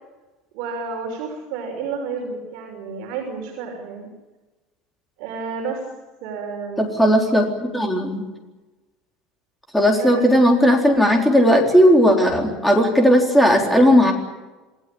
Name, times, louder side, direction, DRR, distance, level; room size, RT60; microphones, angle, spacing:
voice 1, 0.5-4.1 5.2-5.8 6.2-7.0 9.9-10.6, right 5 dB, 60° right, 2 dB, 6.0 m, -31 dB
voice 2, 6.8-8.2 9.7-14.1, equal, 5° left, 1 dB, 3.9 m, -16 dB
28.0 x 18.5 x 8.7 m, 1.1 s
cardioid pair, 170°, 0 cm